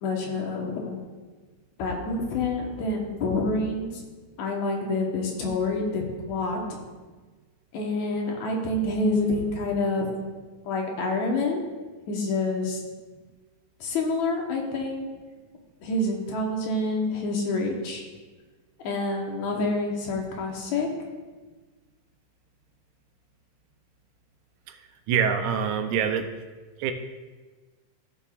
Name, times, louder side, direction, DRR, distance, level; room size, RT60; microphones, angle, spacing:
voice 1, 0.0-1.0 1.8-4.0 4.4-6.8 7.7-10.1 10.7-11.6 12.1-12.8 13.8-15.1 15.8-18.0 18.8-20.9, left 2 dB, 70° left, 0 dB, 2.5 m, -27 dB
voice 2, 25.1-26.3 26.8-26.9, right 7 dB, 85° right, 7 dB, 2.0 m, -25 dB
15.5 x 6.8 x 2.4 m, 1.3 s
omnidirectional pair, 3.5 m